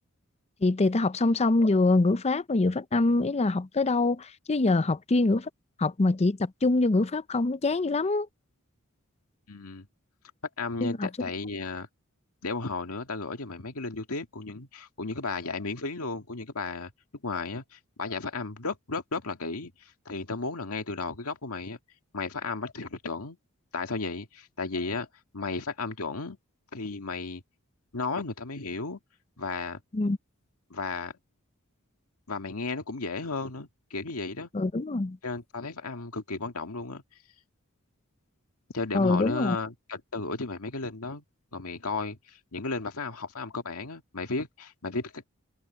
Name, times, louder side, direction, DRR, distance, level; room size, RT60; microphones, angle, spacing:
voice 1, 0.6-5.5 5.8-8.3 10.8-11.1 29.9-30.2 34.5-35.2 38.9-39.6, left 2 dB, 30° left, 0.6 m, -24 dB
voice 2, 9.5-9.9 10.6-11.9 12.4-16.9 17.2-21.8 22.1-23.4 23.7-25.1 25.3-26.4 26.7-27.4 27.9-29.0 29.4-29.8 30.7-31.1 32.3-34.5 35.2-37.0 38.7-41.2 41.5-45.2, left 3 dB, 85° left, 2.0 m, -34 dB
head